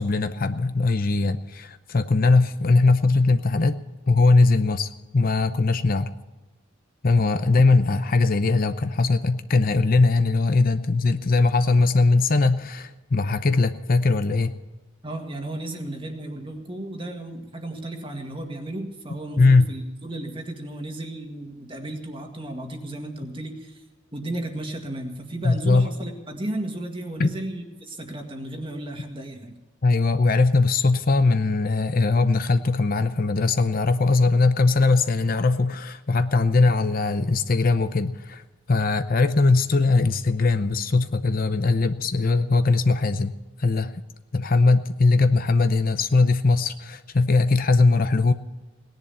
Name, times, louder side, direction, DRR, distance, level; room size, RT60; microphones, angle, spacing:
voice 1, 0.0-3.8 4.1-6.1 7.0-14.5 19.4-19.7 25.4-25.9 27.2-27.3 29.8-43.9 44.3-48.3, left 3 dB, 45° left, 10 dB, 0.6 m, -20 dB
voice 2, 15.0-23.8 24.1-29.5, right 1 dB, 25° right, 3 dB, 1.9 m, -34 dB
18.5 x 10.5 x 6.9 m, 1.2 s
head